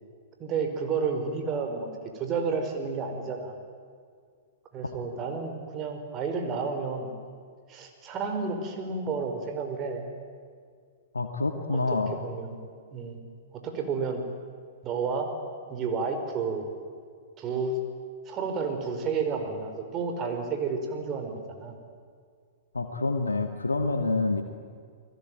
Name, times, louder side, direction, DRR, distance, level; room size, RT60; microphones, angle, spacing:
voice 1, 0.4-1.9 2.1-3.6 4.7-7.1 7.7-10.1 11.7-12.6 12.9-13.2 13.5-14.2 14.8-15.3 15.7-16.7 17.4-17.8 18.2-21.7, right 5 dB, 30° right, 5 dB, 4.9 m, -31 dB
voice 2, 11.1-12.2 22.7-24.4, left 3 dB, 80° left, 6 dB, 1.8 m, -27 dB
29.5 x 20.5 x 9.2 m, 2.1 s
figure-of-eight pair, 105°, 0 cm